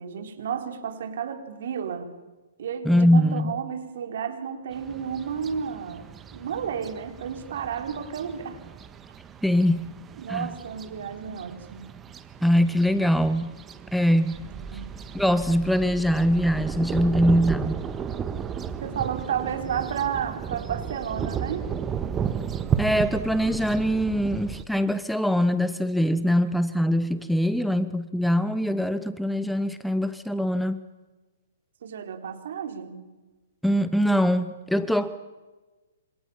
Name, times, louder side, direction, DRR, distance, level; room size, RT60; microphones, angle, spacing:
voice 1, 0.0-2.1 2.6-8.6 10.2-11.9 14.5-14.9 18.8-21.7 31.8-33.1, right 7 dB, 60° right, 6 dB, 4.0 m, -32 dB
voice 2, 2.9-3.5 9.4-9.9 10.3-10.5 12.4-13.5 13.9-14.4 15.1-17.8 22.8-30.8 33.6-35.1, equal, ahead, 13 dB, 0.9 m, -23 dB
sound 1, 4.7-24.6, right 7 dB, 20° right, 1.6 m, -34 dB
27.0 x 26.0 x 7.2 m, 1.2 s
figure-of-eight pair, 120°, 0 cm